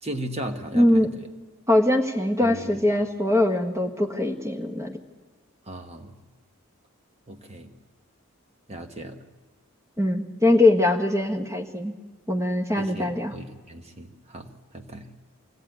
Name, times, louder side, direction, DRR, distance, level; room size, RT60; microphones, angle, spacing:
voice 1, 0.0-1.1 2.4-2.8 5.7-6.2 7.3-7.7 8.7-9.3 12.8-15.2, right 1 dB, 30° right, 5 dB, 1.1 m, -36 dB
voice 2, 0.7-1.1 1.7-5.0 10.0-11.9 12.3-13.3, left 1 dB, 15° right, 3 dB, 1.4 m, -22 dB
23.0 x 16.5 x 9.2 m, 1.4 s
head